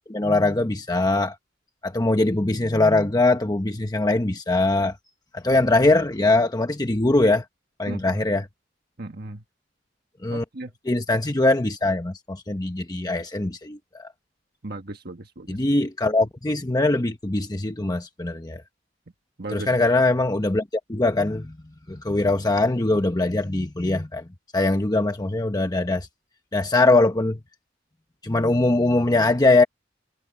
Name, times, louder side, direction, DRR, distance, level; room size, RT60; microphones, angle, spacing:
voice 1, 0.0-1.3 1.8-4.9 5.3-7.4 7.8-8.5 10.2-10.4 10.8-14.1 15.5-18.6 19.5-20.6 20.9-21.6 21.9-24.2 24.5-26.1 26.5-27.4 28.2-29.6, left 2 dB, 20° left, 1.0 m, -22 dB
voice 2, 7.9-8.2 9.0-9.4 10.3-10.7 14.6-15.6 19.4-19.7, right 2 dB, 55° right, 1.4 m, -36 dB
head